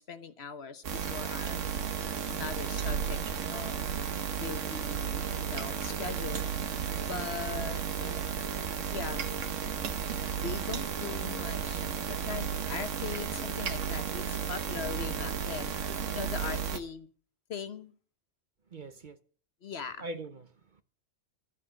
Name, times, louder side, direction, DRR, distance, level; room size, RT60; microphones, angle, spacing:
voice 1, 0.0-1.6 2.3-3.2 3.5-3.8 4.4-6.5 7.0-8.2 8.6-9.3 10.4-15.8 16.1-17.1 17.5-17.9 19.6-20.0, left 6 dB, 60° left, 1.2 m, -40 dB
sound 1, 0.8-16.8, right 7 dB, 85° right, 1.4 m, -33 dB
voice 2, 7.5-8.3 15.9-16.0 18.7-19.2 20.0-20.8, right 2 dB, 45° right, 0.9 m, -45 dB
13.5 x 8.2 x 7.7 m
omnidirectional pair, 1.3 m